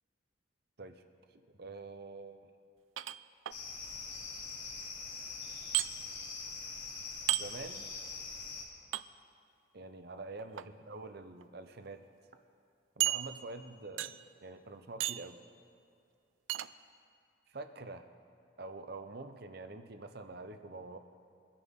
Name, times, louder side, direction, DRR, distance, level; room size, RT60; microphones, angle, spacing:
voice 1, 1.3-2.5 7.3-7.9 9.7-12.0 13.0-14.1 14.4-15.4 17.5-18.1 18.6-21.0, right 3 dB, 55° right, 8 dB, 0.8 m, -46 dB
sound 1, 3.0-3.6 5.7-5.9 7.3-7.5 8.9-9.0 10.4-10.7 11.4-11.5 11.9-12.0 13.0-13.6 14.0-14.3 15.0-15.3 16.5-16.7, right 14 dB, 85° right, 0.4 m, -33 dB
sound 2, 3.5-8.6, left 4 dB, 35° left, 2.7 m, -43 dB
23.5 x 10.0 x 3.7 m, 2.4 s
head